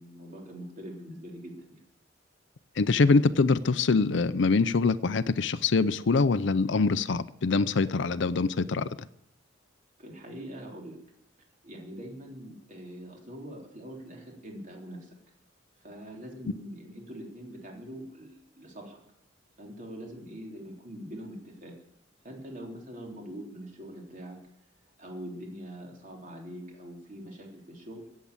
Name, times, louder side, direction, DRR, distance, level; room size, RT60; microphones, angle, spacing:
voice 1, 0.0-1.8 10.0-11.0 11.6-15.2 15.8-19.0 19.6-21.7 22.2-24.4 25.0-28.0, equal, 45° right, 3.5 m, -43 dB
voice 2, 2.8-8.9, left 4 dB, 65° left, 0.6 m, -24 dB
16.5 x 7.5 x 8.6 m
head